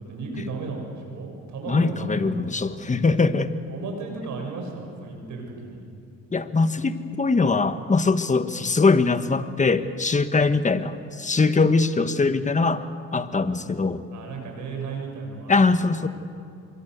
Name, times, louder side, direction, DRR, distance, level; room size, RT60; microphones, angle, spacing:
voice 1, 0.0-2.8 3.7-5.8 14.1-15.5, right 3 dB, 75° right, 2 dB, 7.4 m, -34 dB
voice 2, 1.7-3.5 6.3-12.8 13.1-14.0 15.5-16.1, left 4 dB, 25° left, 10 dB, 1.4 m, -22 dB
26.0 x 23.0 x 8.2 m, 2.4 s
cardioid pair, 90°, 30 cm